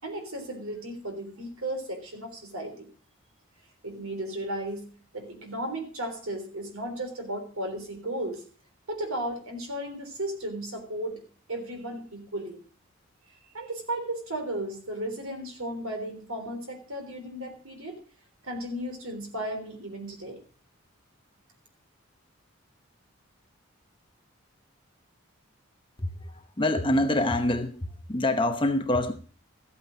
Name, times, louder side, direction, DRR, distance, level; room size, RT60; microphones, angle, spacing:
voice 1, 0.0-2.9 3.8-4.9 5.1-8.4 8.9-11.2 11.5-12.6 13.5-18.0 18.4-20.4, right 1 dB, 85° right, 3.5 m, -35 dB
voice 2, 26.0-29.1, left 1 dB, 25° left, 0.9 m, -26 dB
14.0 x 8.6 x 5.1 m
head